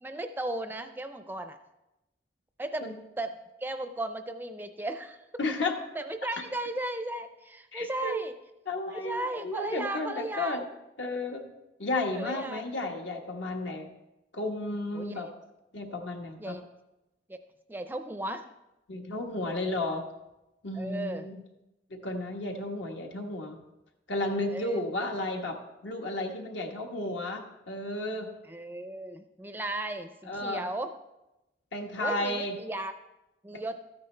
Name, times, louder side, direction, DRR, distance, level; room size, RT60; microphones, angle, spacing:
voice 1, 0.0-1.6 2.6-2.9 3.2-3.3 3.6-5.2 6.0-8.3 8.9-10.6 12.2-12.6 15.0-15.3 16.4-16.6 17.3-17.4 17.7-18.4 20.8-21.3 24.4-24.8 28.5-30.9 32.0-32.9 33.4-33.8, right 1 dB, 10° right, 8 dB, 0.4 m, -35 dB
voice 2, 5.4-5.8 7.7-8.2 8.7-10.6 11.0-11.4 11.8-13.9 14.3-15.3 15.7-16.6 18.9-20.0 20.6-21.4 21.9-23.6 24.1-25.6 25.8-28.3 30.3-30.7 31.7-32.5 33.5-33.6, left 2 dB, 80° left, 3 dB, 1.4 m, -33 dB
13.5 x 9.4 x 3.3 m, 0.96 s
head